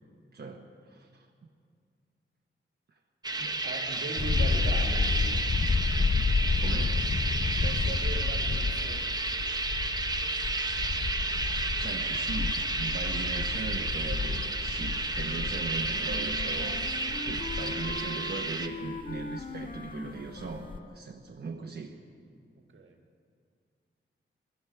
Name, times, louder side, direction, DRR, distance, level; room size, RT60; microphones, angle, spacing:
voice 1, 0.3-1.3 6.6-7.0 11.0-16.8 17.2-22.0, right 4 dB, 50° right, 0 dB, 1.1 m, -39 dB
sound 1, 3.2-18.7, right 2 dB, 20° right, 0.9 m, -32 dB
voice 2, 3.4-5.5 7.6-9.2 22.6-23.0, right 3 dB, 70° right, 3 dB, 1.6 m, -40 dB
sound 2, 4.2-19.9 20.2-20.8, left 4 dB, 25° left, 0.4 m, -31 dB
Wind instrument woodwind instrument, 15.1-21.0, left 2 dB, 45° left, 1.1 m, -41 dB
23.0 x 13.5 x 4.6 m, 2.2 s
wide cardioid pair, 100°, 21 cm